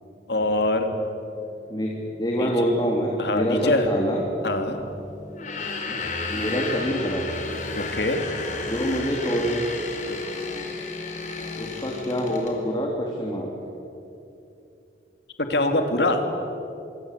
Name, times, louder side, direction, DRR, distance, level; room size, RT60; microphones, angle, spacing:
voice 1, 0.3-0.9 2.3-2.7 3.2-3.9 4.4-4.8 7.7-8.2 10.0-10.2 15.4-16.2, left 2 dB, 70° left, 6 dB, 2.9 m, -24 dB
sound 1, 0.9-13.6, left 4 dB, ahead, 3.2 m, -42 dB
voice 2, 2.2-4.2 5.9-6.0 6.3-7.3 8.6-9.6 11.5-13.5, equal, 25° left, -1 dB, 3.1 m, -26 dB
sound 2, 5.3-12.6, left 3 dB, 45° left, 4.3 m, -33 dB
25.0 x 25.0 x 8.4 m, 2.8 s
head